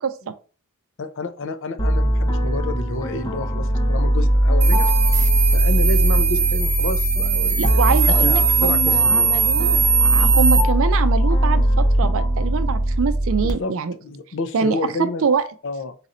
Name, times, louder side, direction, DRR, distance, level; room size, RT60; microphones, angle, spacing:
voice 1, 0.0-0.3 7.6-13.9 14.5-15.4, right 5 dB, 65° right, 11 dB, 0.4 m, -24 dB
voice 2, 1.0-4.9 5.5-9.3 13.4-13.7 14.0-15.3 15.6-16.0, left 3 dB, 60° left, 10 dB, 0.5 m, -30 dB
sound 1, 1.8-13.5, equal, 20° left, 0.6 m, -19 dB
sound 2, 4.6-10.6, right 5 dB, 35° right, 0.8 m, -20 dB
4.0 x 2.5 x 4.2 m, 0.37 s
head